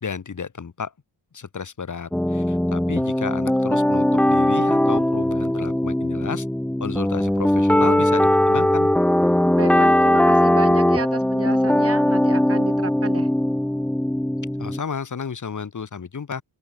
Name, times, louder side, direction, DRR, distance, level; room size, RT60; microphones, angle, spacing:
voice 1, 0.0-0.9 1.3-6.5 6.8-8.9 14.6-16.4, left 6 dB, 40° left, 1.4 m, -32 dB
sound 1, 2.1-14.8, left 1 dB, 5° left, 0.4 m, -19 dB
voice 2, 9.5-13.3, right 5 dB, 30° right, 1.2 m, -32 dB
open air
wide cardioid pair, 115°, 48 cm